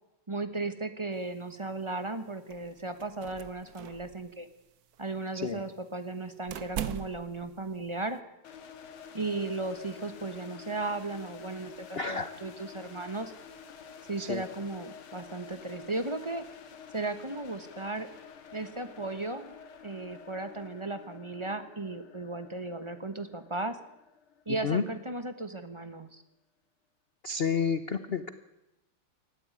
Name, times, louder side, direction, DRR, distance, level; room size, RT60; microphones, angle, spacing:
voice 1, 0.3-4.5 5.0-8.2 9.1-13.3 14.1-16.4 16.9-18.1 18.5-19.5 19.8-23.8 24.5-26.2, right 2 dB, 20° right, 10 dB, 0.8 m, -36 dB
sound 1, 1.1-8.2, right 9 dB, 60° right, 1.1 m, -43 dB
sound 2, 8.4-25.3, left 7 dB, 85° left, 2.4 m, -49 dB
voice 2, 12.0-12.3 14.2-14.4 24.6-24.8 27.2-28.3, left 6 dB, 55° left, 11 dB, 0.6 m, -30 dB
19.0 x 14.5 x 9.8 m, 0.93 s
omnidirectional pair, 2.3 m